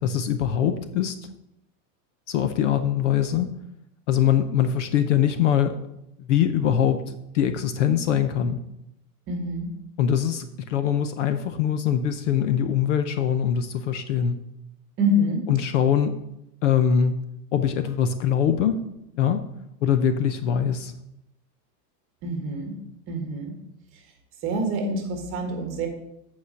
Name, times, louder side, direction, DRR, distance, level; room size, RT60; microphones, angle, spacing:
voice 1, 0.0-1.2 2.3-3.5 4.1-5.8 6.2-8.6 10.0-14.4 15.5-16.2 16.6-17.2 17.5-18.8 19.2-19.4 19.8-20.9, left 9 dB, 50° left, 10 dB, 0.6 m, -23 dB
voice 2, 9.3-9.7 15.0-15.5 22.2-22.7 23.1-23.5 24.4-25.9, equal, 25° right, 4 dB, 1.6 m, -26 dB
8.3 x 5.0 x 6.8 m, 0.82 s
supercardioid pair, 170°, 49 cm